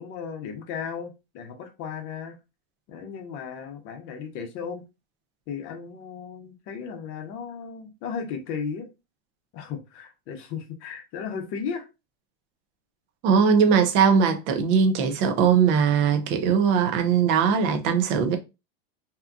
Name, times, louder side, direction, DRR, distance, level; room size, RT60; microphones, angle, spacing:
voice 1, 0.0-2.4 2.9-4.8 5.5-8.9 9.5-11.9, left 6 dB, 40° left, 0.7 m, -35 dB
voice 2, 13.2-18.4, right 6 dB, 35° right, 0.6 m, -20 dB
2.8 x 2.3 x 2.3 m
supercardioid pair, 130°, 32 cm